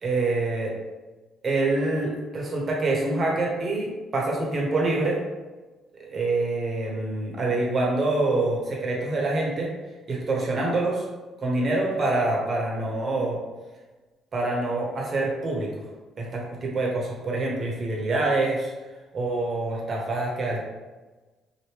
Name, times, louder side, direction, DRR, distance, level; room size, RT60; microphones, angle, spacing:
voice 1, 0.0-0.7 1.4-5.2 6.0-9.7 10.1-11.0 11.4-13.4 14.3-15.8 16.2-18.7 19.1-20.6, right 2 dB, 45° right, -2 dB, 1.0 m, -26 dB
2.9 x 2.6 x 3.2 m, 1.2 s
supercardioid pair, 70°, 0 cm